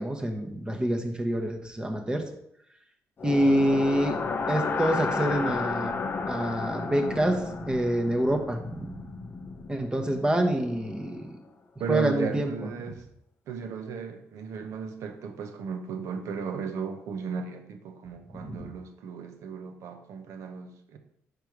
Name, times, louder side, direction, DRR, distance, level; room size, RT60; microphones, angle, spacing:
voice 1, 0.0-2.2 3.2-4.1 4.5-5.9 6.3-7.4 7.7-8.9 9.7-11.4 11.9-12.5 18.3-18.7, right 1 dB, 15° right, 4 dB, 1.0 m, -26 dB
sound 1, 3.2-11.2, left 4 dB, 45° left, 0.7 m, -33 dB
voice 2, 11.8-13.0 13.5-21.0, right 6 dB, 75° right, 7 dB, 0.8 m, -35 dB
5.2 x 4.5 x 4.7 m, 0.73 s
cardioid pair, 90°, 5 cm